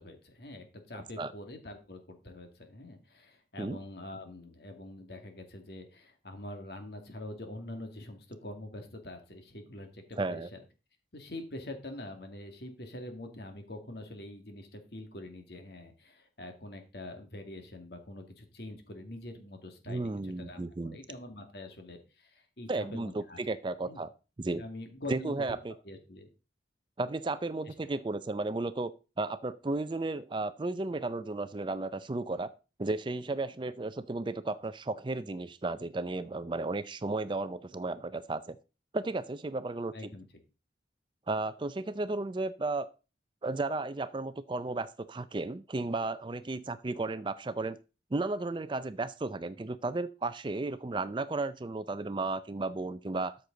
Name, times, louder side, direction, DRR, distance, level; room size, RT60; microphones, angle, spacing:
voice 1, 0.0-10.6 11.1-23.4 23.8-24.0 24.5-25.6 25.8-26.3 27.7-27.8 39.9-40.2, left 1 dB, 55° left, 4 dB, 2.1 m, -45 dB
voice 2, 0.9-1.3 3.6-3.8 10.2-10.5 19.9-21.0 22.7-24.1 24.4-24.6 25.1-25.7 27.0-28.9 29.2-32.5 32.8-38.6 38.9-39.9 41.3-42.9 43.4-47.8 48.1-53.4, right 2 dB, 25° right, 13 dB, 0.4 m, -34 dB
13.0 x 6.6 x 3.9 m, 0.32 s
head